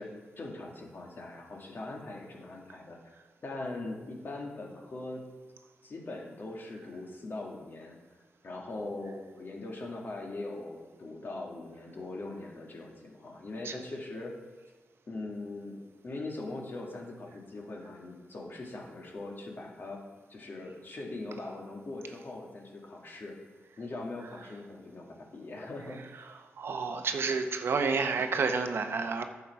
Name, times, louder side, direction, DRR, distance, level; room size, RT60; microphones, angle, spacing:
voice 1, 0.0-3.0 3.4-5.3 5.8-8.0 8.4-14.3 15.1-15.8 16.0-20.0 20.3-23.4 23.8-26.0, left 2 dB, 55° left, 0 dB, 2.1 m, -41 dB
voice 2, 26.6-29.2, right 4 dB, 70° right, 7 dB, 0.8 m, -29 dB
10.0 x 6.9 x 4.7 m, 1.3 s
cardioid pair, 70°, 4 cm